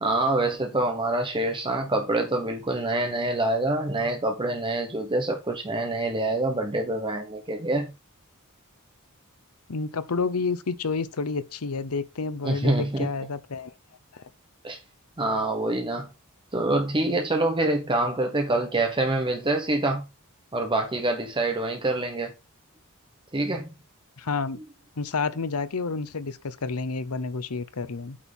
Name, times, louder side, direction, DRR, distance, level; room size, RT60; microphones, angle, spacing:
voice 1, 0.0-7.9 12.4-13.1 14.6-14.8 15.2-16.1 16.5-20.0 20.5-22.3 23.3-23.7, right 2 dB, 20° right, 1.0 m, -26 dB
voice 2, 9.7-13.7 14.1-14.2 24.2-24.6 25.0-28.2, left 4 dB, 80° left, 0.8 m, -30 dB
8.7 x 4.5 x 5.3 m
head